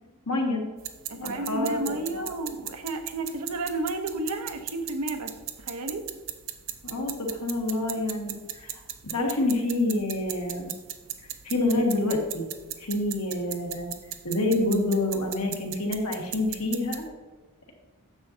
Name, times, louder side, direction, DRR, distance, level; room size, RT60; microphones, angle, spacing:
voice 1, 0.3-0.6 1.2-2.3 6.8-10.7 11.2-12.4 12.8-13.9 14.2-17.0, left 2 dB, 80° left, 0 dB, 1.7 m, -27 dB
sound 1, 0.8-17.1, right 11 dB, 60° right, 0.6 m, -39 dB
voice 2, 1.1-6.1, right 2 dB, 90° right, 5 dB, 0.9 m, -32 dB
10.0 x 7.1 x 2.8 m, 1.3 s
head